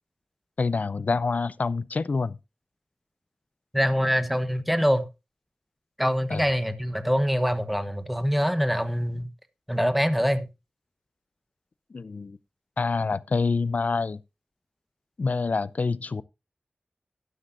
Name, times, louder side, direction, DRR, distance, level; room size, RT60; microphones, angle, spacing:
voice 1, 0.6-2.4 6.3-6.4 11.9-12.4 12.8-14.2 15.2-16.2, left 4 dB, 60° left, 0.5 m, -26 dB
voice 2, 3.7-5.1 6.0-9.3 9.7-10.5, equal, ahead, 1.2 m, -24 dB
11.5 x 11.5 x 2.6 m
wide cardioid pair, 80°, 3 cm